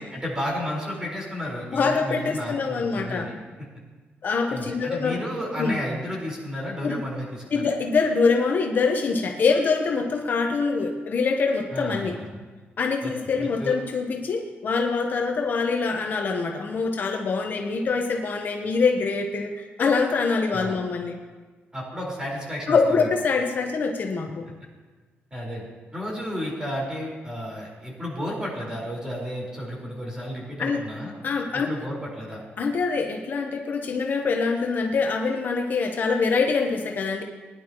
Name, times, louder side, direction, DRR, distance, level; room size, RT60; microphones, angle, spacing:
voice 1, 0.1-3.3 4.5-7.7 11.7-12.4 13.0-13.7 20.5-20.8 21.7-23.1 25.3-25.7 25.9-31.1 31.5-32.4, equal, 15° right, -4 dB, 4.6 m, -32 dB
voice 2, 1.7-3.3 4.2-5.2 5.6-5.8 6.8-7.0 7.5-12.2 12.8-21.2 22.7-24.4 30.6-30.8 31.2-31.7 32.6-37.2, left 4 dB, 45° left, 3 dB, 1.0 m, -24 dB
20.5 x 10.5 x 3.0 m, 1.3 s
cardioid pair, 135°, 4 cm